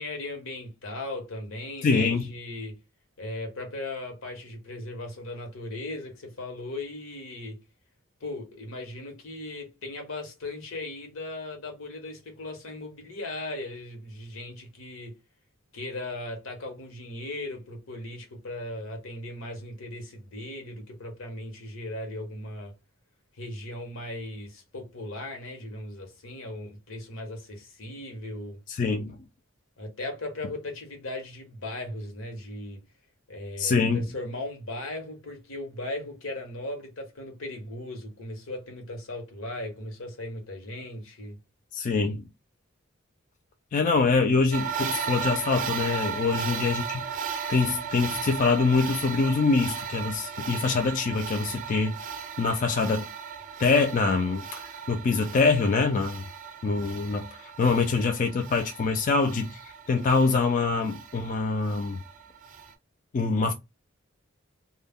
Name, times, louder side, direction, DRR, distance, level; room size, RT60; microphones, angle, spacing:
voice 1, 0.0-2.8 3.2-7.6 8.2-15.1 15.7-22.7 23.4-28.6 29.8-32.8 33.3-41.4 46.3-46.6, left 2 dB, 80° left, 1.0 m, -37 dB
voice 2, 1.8-2.3 28.7-29.2 33.6-34.1 41.7-42.3 43.7-52.0 52.4-53.1 53.6-54.6 54.9-56.3 56.6-62.0 63.1-63.5, left 4 dB, 40° left, 0.3 m, -25 dB
sound 1, 44.5-62.7, right 7 dB, 40° right, 0.5 m, -36 dB
2.2 x 2.0 x 3.5 m
head